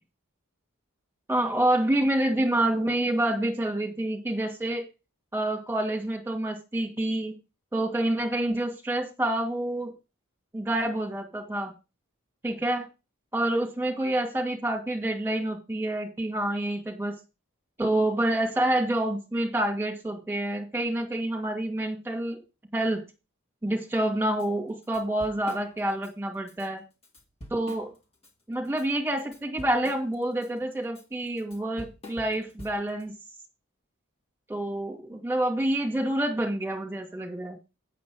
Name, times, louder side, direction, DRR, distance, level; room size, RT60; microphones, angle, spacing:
voice 1, 1.3-4.9 5.3-7.3 7.7-9.9 10.5-11.7 12.4-12.9 13.3-17.2 17.8-22.4 22.7-23.0 23.6-26.8 27.5-27.9 28.5-33.1 34.5-37.6, right 1 dB, 10° right, -1 dB, 2.4 m, -27 dB
Drum kit / Drum, 24.4-24.5 24.8-26.1 26.5-26.7 27.0-28.3 28.6-33.0, left 1 dB, 25° left, 2.1 m, -46 dB
8.4 x 7.1 x 4.8 m, 0.29 s
head